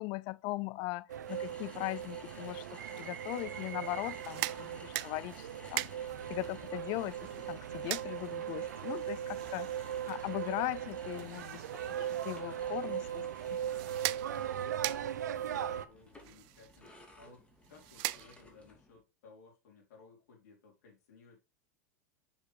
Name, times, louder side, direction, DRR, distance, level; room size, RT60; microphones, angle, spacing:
voice 1, 0.0-13.6, left 21 dB, 50° left, 0.4 m, -40 dB
sound 1, 1.1-15.9, right 10 dB, 85° right, 0.7 m, -39 dB
sound 2, 1.3-19.0, left 2 dB, 15° left, 2.4 m, -56 dB
sound 3, 4.0-18.7, right 22 dB, 55° right, 0.4 m, -43 dB
voice 2, 10.0-10.5 15.0-21.4, left 4 dB, 75° left, 4.1 m, -59 dB
6.9 x 6.7 x 3.3 m
hypercardioid pair, 105°, 9 cm